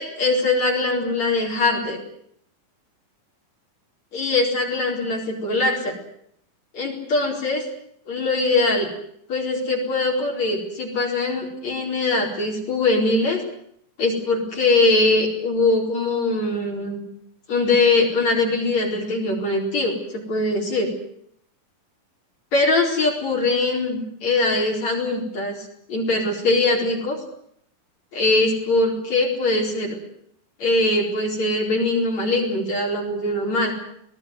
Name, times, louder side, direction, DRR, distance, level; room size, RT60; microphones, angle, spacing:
voice 1, 0.0-2.0 4.1-5.9 6.7-7.7 8.1-8.9 9.3-13.4 14.0-17.0 17.5-20.9 22.5-25.6 25.9-27.2 28.1-30.0 30.6-33.7, left 2 dB, 50° left, -1 dB, 5.7 m, -22 dB
24.0 x 18.5 x 9.7 m, 0.70 s
omnidirectional pair, 4.1 m